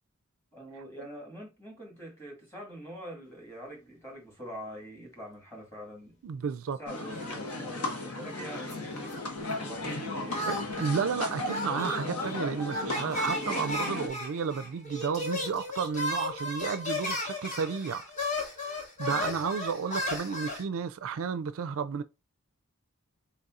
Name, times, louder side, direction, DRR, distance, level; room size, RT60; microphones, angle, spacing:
voice 1, 0.5-6.2 6.8-9.0 9.5-10.7 19.1-19.4, equal, 10° left, 2.0 m, -44 dB
voice 2, 6.2-6.8 10.5-18.0 18.6-22.0, right 6 dB, 65° right, 0.4 m, -32 dB
sound 1, 6.9-14.1, left 2 dB, 80° left, 1.3 m, -35 dB
sound 2, 7.2-8.0 8.3-9.6 10.3-20.6, left 1 dB, 35° left, 1.4 m, -35 dB
4.1 x 4.1 x 2.4 m
head